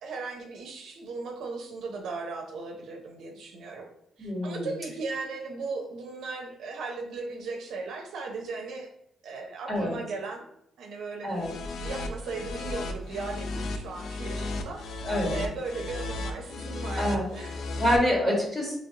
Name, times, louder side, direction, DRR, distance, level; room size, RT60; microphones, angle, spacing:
voice 1, 0.0-3.9 4.2-8.9 9.2-10.4 10.8-17.6, right 3 dB, 75° right, 1 dB, 0.7 m, -37 dB
voice 2, 4.2-4.7 9.7-9.9 11.2-11.5 15.0-15.4 17.0-17.2 17.8-18.8, equal, 15° left, -4 dB, 1.6 m, -26 dB
sound 1, 11.3-18.0, left 2 dB, 70° left, 0.5 m, -34 dB
4.1 x 3.2 x 2.8 m, 0.75 s
cardioid pair, 90°, 0 cm